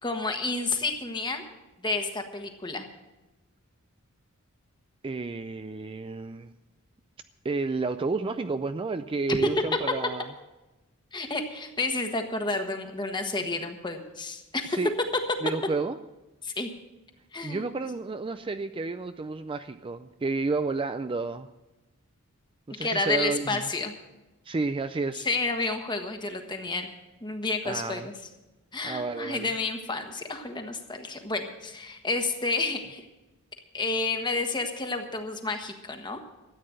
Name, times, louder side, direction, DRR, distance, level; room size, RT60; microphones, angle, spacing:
voice 1, 0.0-1.4 1.8-2.8 9.3-9.4 11.1-14.8 16.4-16.7 17.3-17.7 22.8-23.9 25.1-26.9 27.2-28.1 28.7-33.1 33.7-36.2, left 3 dB, 20° left, 5 dB, 1.4 m, -30 dB
voice 2, 5.0-6.5 7.4-10.3 14.7-14.9 15.4-16.0 17.4-21.5 22.7-23.6 24.5-25.3 27.6-28.1 28.8-29.5, right 3 dB, 25° right, 10 dB, 0.4 m, -31 dB
13.5 x 8.8 x 7.7 m, 1.0 s
head